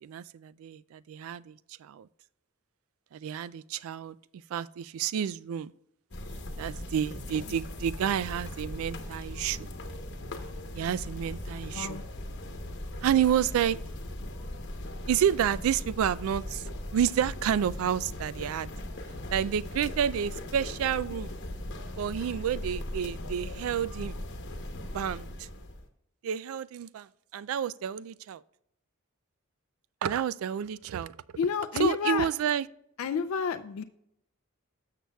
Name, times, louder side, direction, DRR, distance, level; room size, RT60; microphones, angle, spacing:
voice 1, 0.0-2.1 3.1-4.2 4.5-5.7 6.6-9.7 10.7-12.0 13.0-13.8 15.1-18.7 19.3-21.3 22.0-24.2 24.8-25.5 26.2-28.4 30.0-31.2 31.8-32.7, right 9 dB, 75° right, 0.3 m, -30 dB
sound 1, 6.1-25.9, left 1 dB, 55° left, 1.0 m, -39 dB
voice 2, 31.4-32.3 33.0-33.8, left 6 dB, 75° left, 0.4 m, -29 dB
12.5 x 6.7 x 2.3 m
head